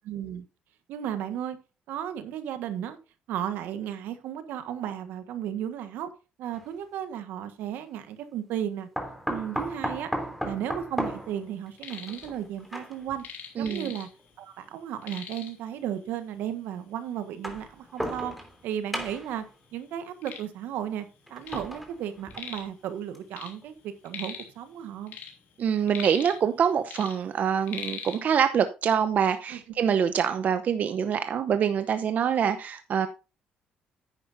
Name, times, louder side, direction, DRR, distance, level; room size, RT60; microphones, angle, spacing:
voice 1, 0.1-0.4 0.9-1.6 1.9-3.0 3.3-6.1 6.4-8.9 9.3-10.1 10.4-13.2 13.6-14.1 14.4-18.3 18.6-19.4 19.7-25.2 29.5-29.6, right 10 dB, 85° right, 1.4 m, -34 dB
sound 1, 6.5-6.7 9.0-13.2 14.2-14.3 15.5-15.6 17.2-18.6 18.9-19.4 21.3-22.6 23.1-23.2 23.6-23.7, equal, ahead, 3.1 m, -35 dB
sound 2, 11.5-12.3 12.6-14.4 14.6-14.7 15.0-15.7 16.5-16.6 17.1-17.2 17.9-18.0 18.3-19.1 19.6-21.7 22.0-22.8 23.1-24.6 24.9-26.6 26.9-28.2, left 7 dB, 75° left, 3.0 m, -41 dB
voice 2, 13.6-13.9 25.6-33.1, right 8 dB, 55° right, 0.8 m, -25 dB
10.0 x 9.9 x 2.6 m
cardioid pair, 85°, 3 cm